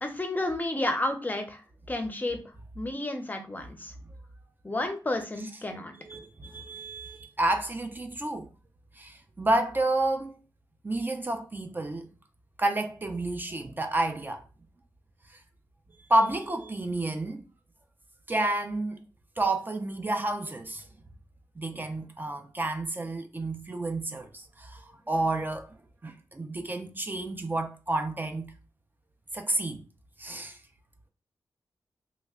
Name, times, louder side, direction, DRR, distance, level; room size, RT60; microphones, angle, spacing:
voice 1, 0.0-1.6 1.9-2.4 2.8-3.9 4.6-5.9, left 2 dB, 25° left, 0.6 m, -31 dB
voice 2, 6.0-8.5 8.9-10.4 10.8-12.1 12.6-14.4 15.3-15.4 16.1-17.4 18.3-19.0 19.4-20.9 21.6-25.7 26.0-28.5 29.3-29.8 30.2-30.6, right 2 dB, 25° right, 0.4 m, -30 dB
3.0 x 2.1 x 3.5 m
wide cardioid pair, 100°, 8 cm